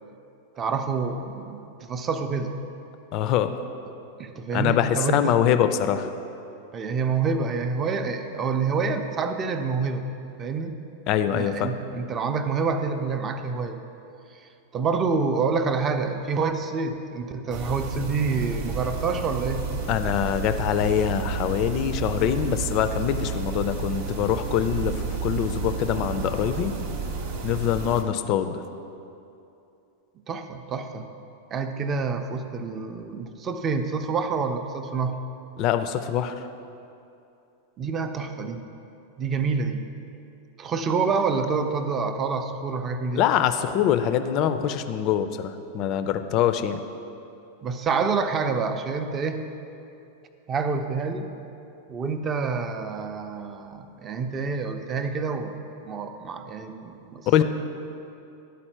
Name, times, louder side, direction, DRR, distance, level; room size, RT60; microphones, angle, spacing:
voice 1, 0.6-2.6 4.2-5.4 6.7-10.1 10.4-10.7 11.3-13.8 14.3-14.4 14.7-19.7 30.3-31.1 31.5-35.2 37.8-38.7 39.2-39.8 40.6-43.2 47.6-49.4 50.5-51.3 51.9-55.6 55.8-57.4, right 5 dB, 25° right, 7 dB, 0.5 m, -27 dB
voice 2, 3.1-3.5 4.5-6.1 11.1-11.7 19.9-26.7 27.4-28.6 35.6-36.3 43.1-46.8 57.3-57.4, left 10 dB, 40° left, 10 dB, 0.4 m, -24 dB
sound 1, 17.5-28.0, right 5 dB, 55° right, 0.8 m, -31 dB
10.5 x 4.2 x 4.4 m, 2.7 s
figure-of-eight pair, 90°, 0 cm